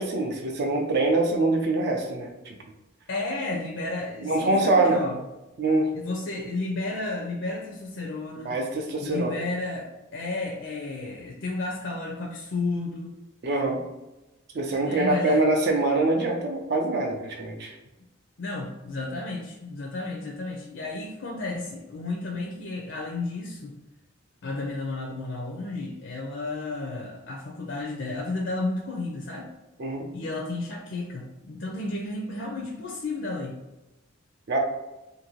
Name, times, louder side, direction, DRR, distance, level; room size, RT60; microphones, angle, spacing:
voice 1, 0.0-2.5 4.2-5.0 5.6-5.9 8.4-9.4 13.4-13.8 14.5-17.7 29.8-30.1 34.5-34.6, right 2 dB, 50° right, 2 dB, 0.4 m, -24 dB
voice 2, 3.1-5.2 5.9-8.6 9.0-13.2 14.8-15.4 18.4-23.7 24.4-29.5 30.1-33.6, left 2 dB, 60° left, -1 dB, 0.4 m, -32 dB
2.6 x 2.6 x 3.0 m, 1.0 s
head